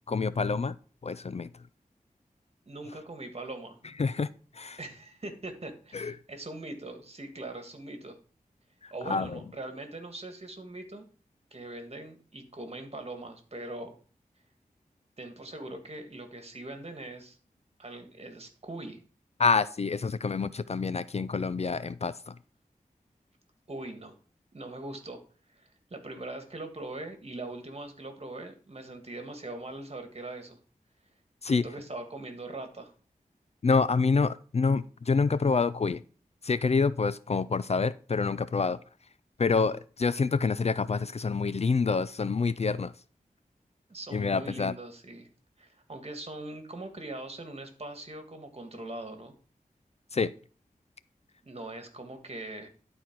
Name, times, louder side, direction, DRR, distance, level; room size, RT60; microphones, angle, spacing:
voice 1, 0.1-0.8 1.0-1.5 4.0-4.3 4.5-4.8 5.9-6.1 8.8-9.4 19.4-22.3 31.4-31.7 33.6-36.0 36.4-38.8 39.4-42.9 44.1-44.7 50.1-50.3, left 4 dB, 45° left, 0.4 m, -27 dB
voice 2, 2.7-3.8 4.8-8.2 8.9-11.1 11.5-14.0 15.2-17.4 17.8-19.0 23.7-24.2 24.5-25.2 25.5-30.6 31.4-32.9 43.9-45.3 45.6-49.3 51.4-52.7, right 2 dB, 45° right, 1.7 m, -41 dB
11.5 x 4.4 x 4.6 m
wide cardioid pair, 75°, 15 cm